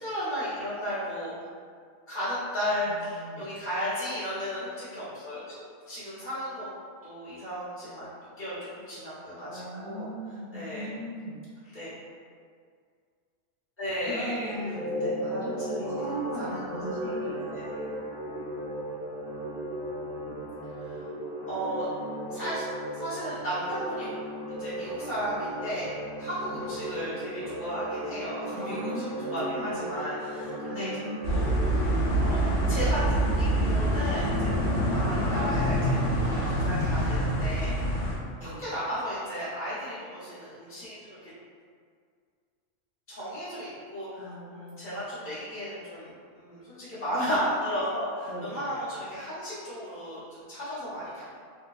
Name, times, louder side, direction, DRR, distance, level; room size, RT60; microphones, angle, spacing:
voice 1, 0.0-1.5 2.1-6.7 7.0-8.1 8.4-10.1 10.5-10.9 11.7-11.9 13.8-14.5 15.0-15.1 16.0-16.8 17.4-17.7 20.8-21.0 21.5-21.9 22.3-22.7 22.9-24.2 24.5-25.9 26.2-29.0 29.3-31.4 31.7-31.9 32.2-32.4 32.7-34.5 34.9-36.0 36.3-37.7 38.4-41.3 43.1-51.2, equal, 10° left, -13 dB, 0.9 m, -34 dB
voice 2, 2.8-3.5 9.5-11.5 14.0-17.4 17.7-17.9 20.3-20.8 26.5-26.7 28.5-29.9 30.7-31.4 38.3-38.7 44.2-45.0 48.3-48.7, equal, 40° left, -15 dB, 0.9 m, -38 dB
sound 1, 14.5-31.7, right 1 dB, 80° right, 1.1 m, -36 dB
sound 2, 31.2-38.2, right 1 dB, 85° left, 1.0 m, -26 dB
2.7 x 2.1 x 2.3 m, 2.1 s
omnidirectional pair, 1.3 m